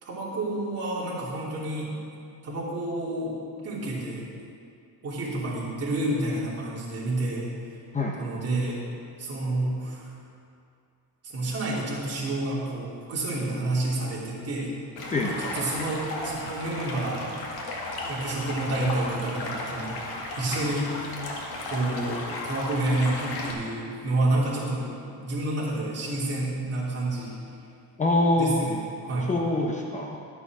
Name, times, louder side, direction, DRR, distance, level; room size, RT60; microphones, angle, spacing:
voice 1, 0.0-1.9 2.4-3.3 3.6-4.2 5.0-7.5 8.2-8.8 9.2-10.0 11.2-14.7 15.0-15.1 15.4-17.4 18.0-20.9 21.6-24.8 25.2-27.4 28.4-28.8 29.0-29.3, right 2 dB, 35° right, -6 dB, 3.2 m, -29 dB
Stream, 15.0-23.5, left 2 dB, 70° left, 2.1 m, -35 dB
voice 2, 28.0-28.6 29.3-30.2, left 2 dB, 20° left, 0 dB, 0.7 m, -24 dB
13.0 x 6.8 x 6.2 m, 2.5 s
cardioid pair, 145°, 40 cm